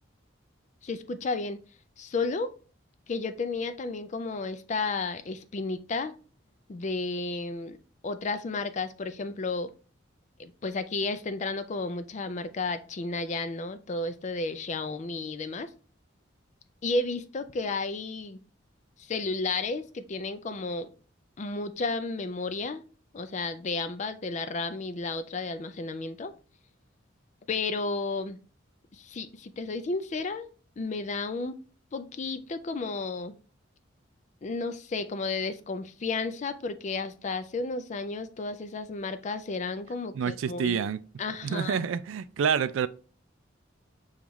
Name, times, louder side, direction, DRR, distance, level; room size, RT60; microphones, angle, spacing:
voice 1, 0.8-1.6 2.0-2.5 3.1-6.1 6.7-7.8 8.0-9.7 10.4-15.7 16.8-18.4 19.0-20.9 21.4-22.8 23.1-26.3 27.5-28.4 28.9-30.5 30.8-31.6 31.9-33.4 34.4-40.8 41.2-41.8, left 3 dB, 40° left, 0.4 m, -32 dB
voice 2, 40.1-41.0 41.4-42.9, right 7 dB, 80° right, 0.3 m, -28 dB
6.9 x 2.4 x 3.0 m
head